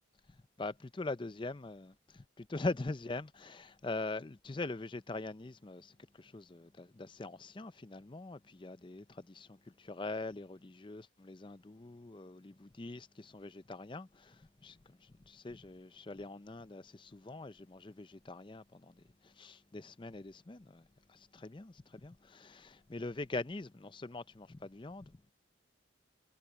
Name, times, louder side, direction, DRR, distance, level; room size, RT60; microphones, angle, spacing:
voice 1, 0.6-5.9 6.2-9.5 9.8-14.3 14.6-14.8 15.3-18.9 19.4-20.8 21.1-21.7 22.0-25.1, left 2 dB, 25° left, 0.5 m, -42 dB
head